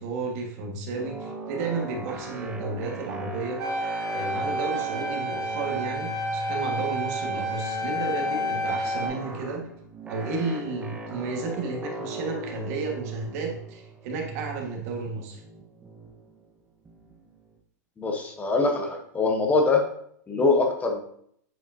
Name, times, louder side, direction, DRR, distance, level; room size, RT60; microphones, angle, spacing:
voice 1, 0.0-3.6 4.1-9.6 10.1-15.4, right 4 dB, 55° right, 1 dB, 1.7 m, -32 dB
sound 1, 0.9-17.5, right 2 dB, 10° right, 0.7 m, -39 dB
sound 2, 3.6-9.1, equal, 35° right, 1.7 m, -30 dB
voice 2, 18.0-19.8 20.3-21.0, left 3 dB, 15° left, 2 dB, 1.0 m, -23 dB
7.9 x 5.1 x 2.8 m, 0.66 s
hypercardioid pair, 135°, 10 cm